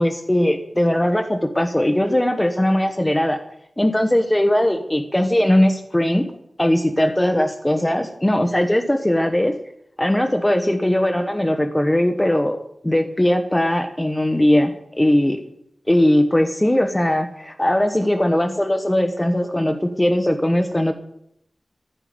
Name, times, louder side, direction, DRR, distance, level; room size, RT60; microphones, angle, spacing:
voice 1, 0.0-3.4 3.8-6.2 6.6-9.5 10.0-12.6 12.8-15.4 15.9-20.9, left 1 dB, 15° left, 6 dB, 1.3 m, -19 dB
14.5 x 13.0 x 5.2 m, 0.76 s
wide cardioid pair, 80°, 0 cm